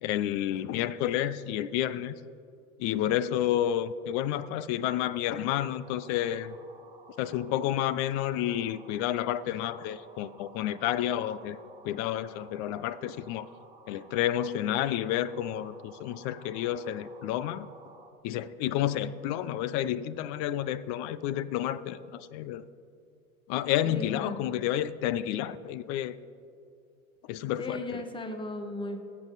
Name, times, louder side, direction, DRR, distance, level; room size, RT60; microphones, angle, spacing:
voice 1, 0.0-2.1 2.8-6.6 7.2-11.6 11.8-13.5 13.9-17.7 18.2-22.6 23.5-26.1 27.3-28.0, left 11 dB, 40° left, 17 dB, 0.5 m, -30 dB
sound 1, 5.8-18.1, right 4 dB, 15° right, 1.2 m, -54 dB
voice 2, 23.8-24.6 27.6-29.0, left 2 dB, 10° left, 7 dB, 1.1 m, -37 dB
20.5 x 7.5 x 4.0 m, 2.5 s
hypercardioid pair, 100°, 43 cm